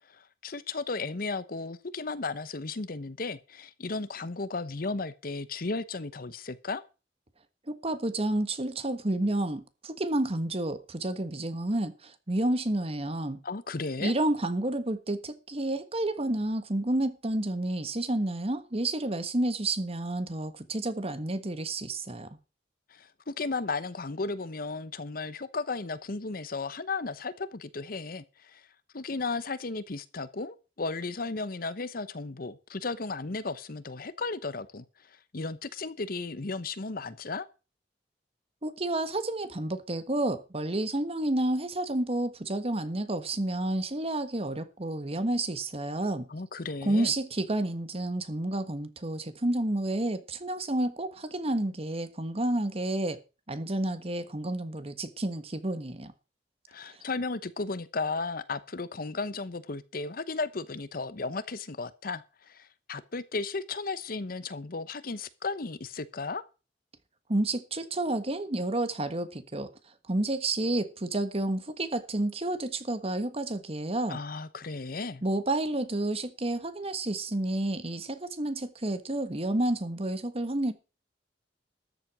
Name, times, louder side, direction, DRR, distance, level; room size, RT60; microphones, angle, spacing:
voice 1, 0.1-6.8 13.4-14.1 22.9-28.7 28.9-37.5 46.3-47.1 56.7-66.4 74.1-75.2, left 3 dB, 55° left, 0.9 m, -35 dB
voice 2, 7.7-13.4 14.0-22.3 38.6-46.3 46.8-53.2 53.5-56.1 67.3-69.7 70.1-74.2 75.2-80.7, right 1 dB, 35° right, 1.4 m, -30 dB
13.5 x 7.7 x 6.1 m
head